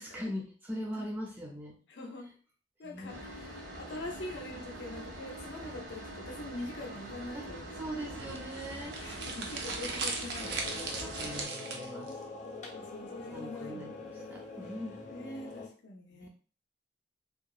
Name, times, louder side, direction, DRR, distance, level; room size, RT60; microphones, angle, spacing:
voice 1, 0.0-1.8 2.8-3.1 7.3-7.5 7.8-9.3 10.5-12.2 13.3-15.0 16.1-16.3, equal, 10° right, -2 dB, 0.4 m, -41 dB
voice 2, 1.9-2.3 2.8-8.2 9.0-11.0 12.7-13.9 15.1-16.3, left 2 dB, 85° left, 1 dB, 0.6 m, -44 dB
sound 1, 3.1-11.5, right 1 dB, 85° right, 1.2 m, -44 dB
sound 2, 8.1-12.1, right 4 dB, 70° right, 0.5 m, -38 dB
sound 3, 10.4-15.7, left 3 dB, 45° left, 0.6 m, -44 dB
2.8 x 2.1 x 2.3 m, 0.40 s
head